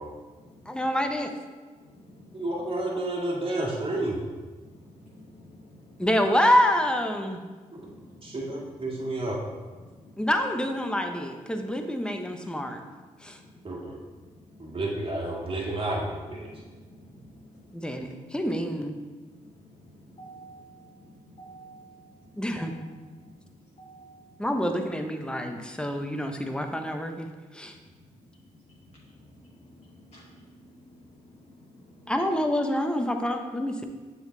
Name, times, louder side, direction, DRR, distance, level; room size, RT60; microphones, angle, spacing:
voice 1, 0.1-0.9 1.7-2.8 4.6-6.3 7.6-9.3 9.7-10.3 11.5-11.7 13.1-15.0 16.1-18.6 19.2-24.5 25.6-25.7 27.6-32.3, equal, 50° left, -6 dB, 1.3 m, -52 dB
voice 2, 0.7-1.3 6.0-7.4 10.2-12.8 13.2-13.4 17.7-19.0 22.3-22.7 24.4-27.3 27.5-27.7 32.1-33.8, left 1 dB, 5° left, 5 dB, 0.8 m, -27 dB
voice 3, 2.3-4.2 7.7-7.8 8.2-9.4 13.6-14.0 14.6-16.5, right 1 dB, 40° right, -3 dB, 1.8 m, -30 dB
6.9 x 3.8 x 3.8 m, 1.3 s
supercardioid pair, 50°, 14 cm